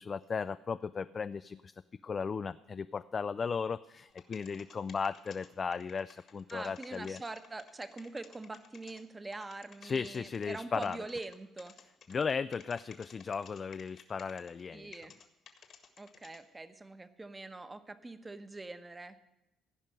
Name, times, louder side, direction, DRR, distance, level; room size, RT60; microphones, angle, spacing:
voice 1, 0.0-1.7 2.0-7.2 9.8-11.0 12.1-15.0, left 5 dB, 40° left, 12 dB, 0.3 m, -36 dB
sound 1, 4.1-9.0 9.3-10.5 10.8-14.6 14.9-16.4, left 7 dB, 60° left, 1.7 m, -54 dB
voice 2, 6.5-11.8 14.7-15.1 16.0-19.2, right 2 dB, 20° right, 10 dB, 1.0 m, -44 dB
16.0 x 5.4 x 9.0 m, 0.96 s
supercardioid pair, 70°, 0 cm